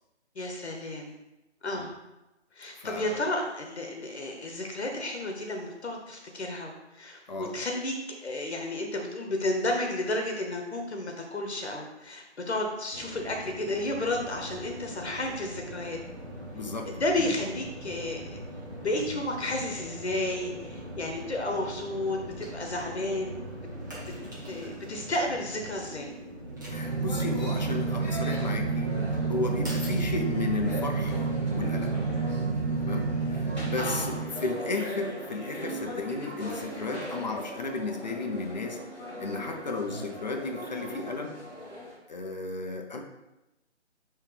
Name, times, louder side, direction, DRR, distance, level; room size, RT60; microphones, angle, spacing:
voice 1, 0.3-1.1 1.6-1.9 2.6-16.0 16.9-18.4 18.8-23.3 24.5-26.1 33.8-34.2 36.9-37.1, left 1 dB, 65° left, 2 dB, 1.1 m, -32 dB
voice 2, 2.8-3.2 7.3-7.5 16.5-16.9 17.2-17.3 26.7-32.0 32.8-38.8 39.2-41.3 42.1-43.0, left 3 dB, 40° left, 3 dB, 0.7 m, -34 dB
sound 1, 12.9-31.0, equal, 15° right, 0.7 m, -42 dB
sound 2, 26.4-34.8, right 4 dB, 55° right, 0.6 m, -29 dB
sound 3, 26.7-41.9, right 1 dB, 5° left, 1.8 m, -40 dB
9.4 x 3.2 x 3.3 m, 0.97 s
figure-of-eight pair, 160°, 35 cm